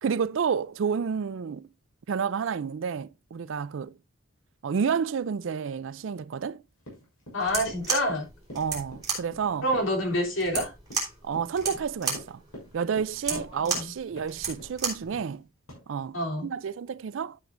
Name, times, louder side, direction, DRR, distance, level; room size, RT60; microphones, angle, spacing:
voice 1, 0.0-1.7 2.1-3.9 4.6-6.6 8.6-9.7 11.2-12.4 12.7-15.4 15.9-17.4, right 6 dB, 65° right, 0.4 m, -30 dB
Run, 6.8-13.9 14.2-14.8 15.1-15.3 15.7-15.8, equal, 85° left, 6.3 m, -45 dB
voice 2, 7.3-8.3 9.6-10.7 13.3-13.9 16.1-16.5, equal, 65° left, 3.1 m, -28 dB
sound 1, 7.4-15.1, right 4 dB, 20° right, 3.4 m, -33 dB
12.0 x 7.9 x 2.5 m
head